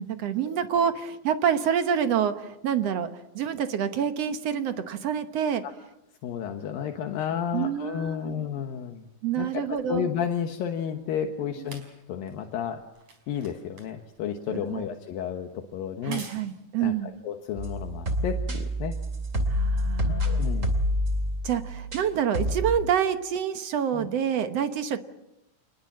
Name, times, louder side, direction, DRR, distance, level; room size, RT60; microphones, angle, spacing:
voice 1, 0.0-3.1 3.4-5.6 7.5-8.5 9.2-10.1 11.6-11.7 14.5-14.8 16.0-17.1 19.5-20.4 21.4-25.0, right 8 dB, 65° right, 9 dB, 1.6 m, -27 dB
voice 2, 6.2-9.1 9.4-11.8 12.1-12.8 13.3-16.2 16.8-17.0 17.2-19.0 20.1-20.7 23.9-24.1, left 8 dB, 75° left, 5 dB, 3.0 m, -32 dB
sound 1, 9.8-18.4 19.2-19.3, right 4 dB, 45° right, 5.6 m, -50 dB
sound 2, 17.6-22.1 22.3-22.8, equal, 25° right, 2.3 m, -27 dB
27.5 x 21.0 x 7.5 m, 0.92 s
omnidirectional pair, 4.3 m